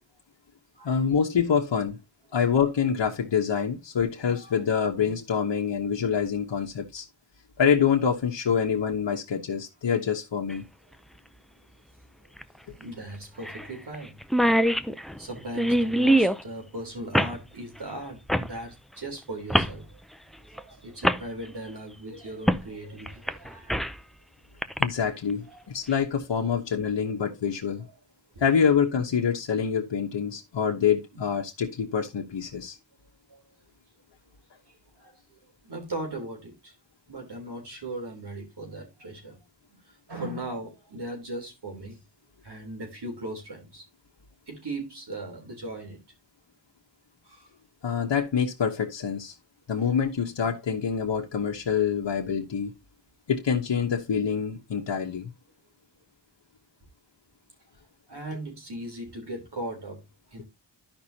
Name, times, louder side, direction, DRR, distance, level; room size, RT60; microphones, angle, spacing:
voice 1, 0.8-2.0 2.3-7.0 7.6-10.6 24.8-27.9 28.4-32.8 47.8-49.3 49.7-52.7 53.3-55.3, left 7 dB, 80° left, 1.2 m, -26 dB
sound 1, 10.5-10.6 12.4-12.5 12.8-12.9 13.4-13.7 13.9-14.0 14.2-16.4 17.1-17.4 18.3-18.5 19.5-19.8 20.6-20.7 21.0-21.2 22.5-22.6 23.1-24.0 24.6-24.8, equal, ahead, 0.5 m, -23 dB
voice 2, 12.8-14.2 14.6-14.8 15.2-20.0 20.5-23.9 25.5-25.8 27.2-27.3 27.8-27.9 28.4-28.5 31.1-31.2 33.3-33.4 34.7-35.4 35.6-36.7 37.1-39.4 39.7-42.0 42.4-43.9 44.5-46.1 47.2-47.5 58.1-60.4, right 1 dB, 65° right, 3.7 m, -38 dB
13.0 x 5.4 x 2.8 m
wide cardioid pair, 85°, 44 cm